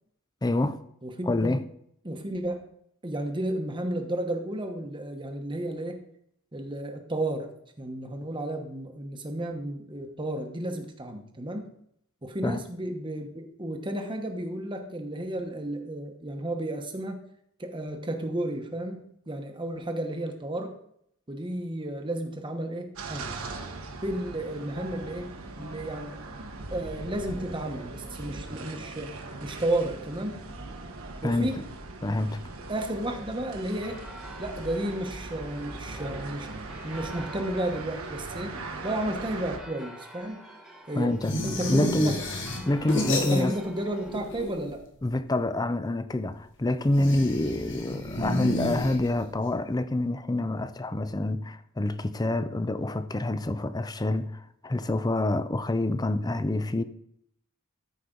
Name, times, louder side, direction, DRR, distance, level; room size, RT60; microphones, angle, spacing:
voice 1, 0.4-0.8 1.3-1.6 12.4-12.6 31.2-31.5 32.0-32.4 41.0-41.4 41.7-42.2 42.7-43.5 45.0-56.8, left 2 dB, 20° left, 0.5 m, -27 dB
voice 2, 1.0-1.5 2.0-2.7 3.0-6.0 6.5-7.5 7.8-11.7 12.2-17.3 17.6-20.7 21.3-23.4 24.0-26.2 26.7-29.1 29.4-30.4 31.2-31.5 32.7-34.0 34.4-36.5 36.8-38.5 38.8-40.5 40.9-41.1 41.4-42.2 42.6-42.7 43.2-44.8, right 1 dB, 20° right, 1.1 m, -32 dB
sound 1, 22.9-39.6, right 3 dB, 75° right, 1.3 m, -40 dB
sound 2, 33.7-44.3, right 1 dB, ahead, 1.2 m, -48 dB
sound 3, 41.2-43.8 44.0-44.9 46.9-49.4, left 1 dB, 55° left, 1.7 m, -31 dB
13.5 x 5.1 x 3.9 m
head